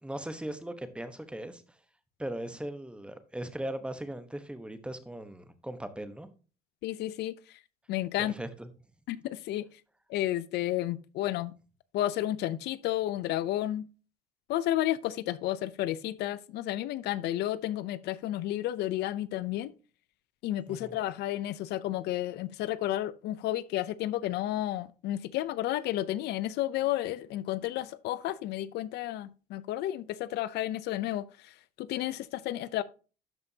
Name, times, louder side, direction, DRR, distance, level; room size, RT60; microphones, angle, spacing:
voice 1, 0.0-1.6 2.2-6.3 8.2-8.7 20.7-21.0, right 1 dB, 5° right, 1.1 m, -39 dB
voice 2, 6.8-7.3 7.9-8.3 9.1-9.7 10.1-11.5 11.9-13.9 14.5-19.7 20.4-31.5 31.8-32.8, left 14 dB, 80° left, 0.6 m, -32 dB
12.5 x 5.2 x 2.8 m
cardioid pair, 110°, 17 cm